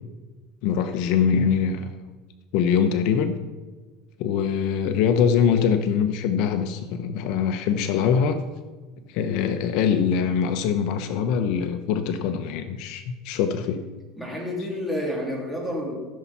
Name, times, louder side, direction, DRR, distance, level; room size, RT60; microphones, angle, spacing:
voice 1, 0.6-1.9 2.5-3.4 4.2-8.4 9.1-13.8, left 7 dB, 65° left, 8 dB, 0.8 m, -23 dB
voice 2, 14.2-15.9, left 1 dB, ahead, -3 dB, 3.1 m, -30 dB
15.5 x 7.1 x 4.3 m, 1.3 s
supercardioid pair, 130°, 0 cm